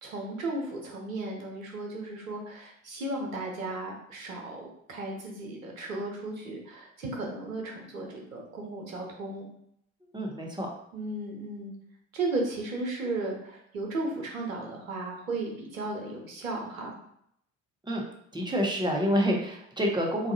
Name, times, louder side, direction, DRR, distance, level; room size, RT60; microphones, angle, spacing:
voice 1, 0.0-9.5 10.9-11.7 12.1-16.9, right 2 dB, 85° right, 0 dB, 0.8 m, -35 dB
voice 2, 10.1-10.7 17.9-18.0 18.3-20.3, equal, 10° right, 0 dB, 0.8 m, -27 dB
3.9 x 2.5 x 2.7 m, 0.71 s
hypercardioid pair, 60°, 40 cm